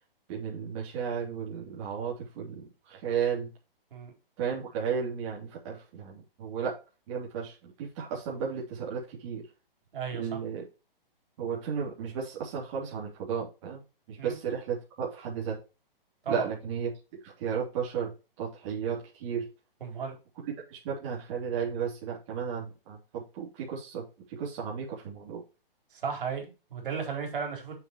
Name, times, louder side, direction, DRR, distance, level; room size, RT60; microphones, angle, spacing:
voice 1, 0.3-3.5 4.4-6.8 7.1-9.5 10.1-10.6 11.4-13.8 14.1-15.6 16.3-16.9 17.2-19.5 20.4-25.4, right 7 dB, 35° right, 3.1 m, -34 dB
voice 2, 9.9-10.4 14.2-14.4 16.2-16.4 19.8-20.1 25.9-27.8, right 6 dB, 65° right, 4.2 m, -35 dB
9.0 x 6.8 x 3.1 m
hypercardioid pair, 155°, 29 cm